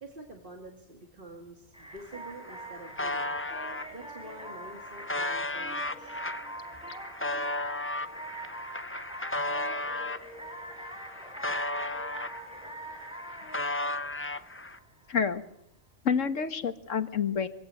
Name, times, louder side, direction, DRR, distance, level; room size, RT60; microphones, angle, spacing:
voice 1, 0.0-3.4 3.9-6.2, right 2 dB, 45° right, 2 dB, 2.5 m, -47 dB
sound 1, 1.7-15.2, right 1 dB, 5° right, 4.8 m, -43 dB
sound 2, 2.0-2.1 2.3-3.8 4.5-10.3 10.7-12.7 12.9-14.8, left 2 dB, 15° left, 0.5 m, -34 dB
voice 2, 15.1-15.4 16.1-17.5, left 6 dB, 90° left, 10 dB, 1.8 m, -28 dB
24.5 x 16.5 x 7.8 m, 0.77 s
omnidirectional pair, 1.3 m